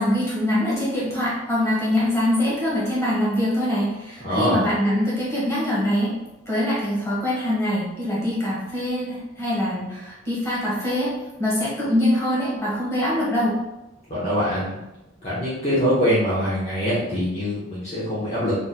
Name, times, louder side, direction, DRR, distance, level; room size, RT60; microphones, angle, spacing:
voice 1, 0.0-6.1 6.5-13.6, left 1 dB, 15° left, -8 dB, 1.5 m, -23 dB
voice 2, 4.2-4.6 14.1-14.8 15.2-18.5, equal, 35° left, -9 dB, 1.1 m, -23 dB
4.2 x 3.5 x 2.3 m, 0.96 s
head